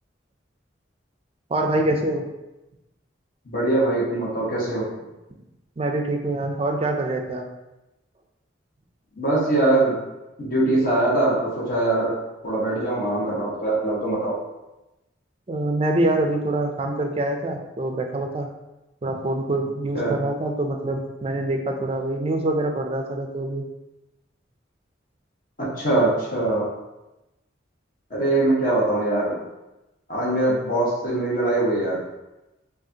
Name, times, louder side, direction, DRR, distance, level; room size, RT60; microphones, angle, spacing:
voice 1, 1.5-2.2 5.8-7.5 15.5-18.5 19.0-23.6, right 1 dB, 30° right, 3 dB, 0.4 m, -25 dB
voice 2, 3.5-4.9 9.2-10.0 10.4-12.1 12.4-14.3 19.9-20.1 25.8-26.6 28.1-29.3 30.1-32.0, right 2 dB, 45° left, -6 dB, 1.2 m, -22 dB
5.0 x 2.4 x 2.8 m, 0.99 s
head